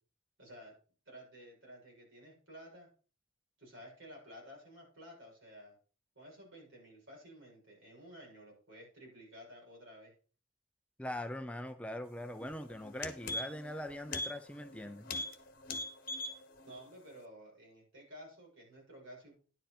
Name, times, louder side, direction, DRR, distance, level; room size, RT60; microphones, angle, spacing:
voice 1, 0.4-0.8 1.0-2.9 3.6-5.8 6.1-10.1 16.7-19.4, equal, 75° right, -2 dB, 6.9 m, -53 dB
voice 2, 11.0-15.1, left 1 dB, 5° left, 7 dB, 0.5 m, -42 dB
sound 1, 12.4-12.5 12.8-13.7 14.1-14.3 14.6-14.8 15.1-15.3 15.6-16.4 16.7-16.8, left 2 dB, 45° left, 1.3 m, -38 dB
10.5 x 7.8 x 4.3 m, 0.38 s
head